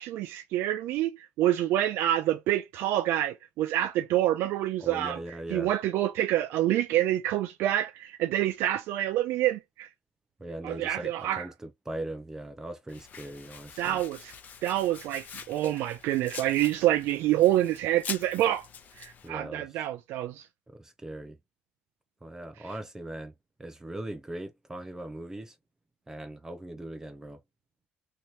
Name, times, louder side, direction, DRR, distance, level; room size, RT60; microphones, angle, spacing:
voice 1, 0.0-5.2 5.5-9.9 10.6-11.5 13.8-14.3 14.6-18.7 19.0-20.5, right 13 dB, 80° right, 0.3 m, -27 dB
voice 2, 4.8-5.7 10.4-14.0 19.2-19.8 20.7-21.4 22.2-23.3 23.6-25.6 26.1-27.4, right 1 dB, 15° right, 0.6 m, -40 dB
Domestic sounds home sounds, 12.9-19.3, left 7 dB, 45° left, 0.7 m, -44 dB
3.1 x 2.9 x 2.8 m
cardioid pair, 115°, 4 cm